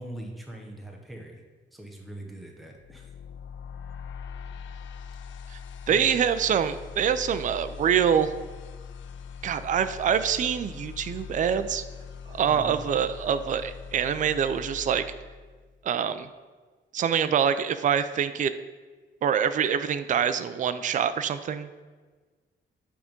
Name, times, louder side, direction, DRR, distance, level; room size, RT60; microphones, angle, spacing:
voice 1, 0.0-1.4 1.7-3.1 5.9-6.0 12.5-12.8, right 1 dB, ahead, 0 dB, 0.9 m, -41 dB
sound 1, 2.8-15.8, left 6 dB, 90° left, 0.5 m, -42 dB
voice 2, 5.9-8.3 9.4-11.8 12.3-15.0 15.8-16.3 16.9-18.5 19.2-21.7, right 8 dB, 45° right, 11 dB, 0.4 m, -25 dB
8.6 x 3.6 x 5.2 m, 1.4 s
wide cardioid pair, 140°, 19 cm